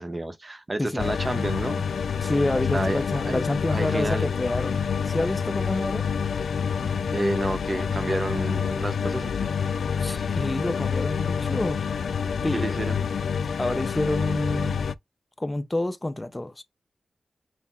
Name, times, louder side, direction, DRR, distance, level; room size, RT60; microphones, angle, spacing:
voice 1, 0.0-2.3 2.7-3.4 3.7-4.3 7.1-9.5 12.5-13.0, right 2 dB, 30° right, 0.8 m, -30 dB
sound 1, 1.0-14.9, left 6 dB, 90° left, 0.3 m, -27 dB
voice 2, 2.2-6.1 10.0-11.8 12.4-12.7 13.6-14.8 15.4-16.6, left 1 dB, 20° left, 0.5 m, -28 dB
5.9 x 2.1 x 4.2 m
wide cardioid pair, 100°, 0 cm